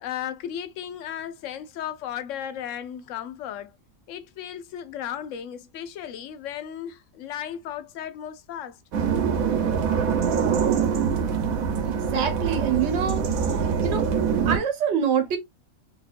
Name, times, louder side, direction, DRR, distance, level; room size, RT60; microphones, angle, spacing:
voice 1, 0.0-3.8 4.1-8.8, left 10 dB, 70° left, 0.9 m, -35 dB
sound 1, 8.9-14.6, right 6 dB, 80° right, 1.2 m, -24 dB
voice 2, 11.8-13.2 13.8-14.1 14.4-15.4, right 7 dB, 55° right, 1.2 m, -25 dB
4.0 x 2.9 x 2.5 m
omnidirectional pair, 1.4 m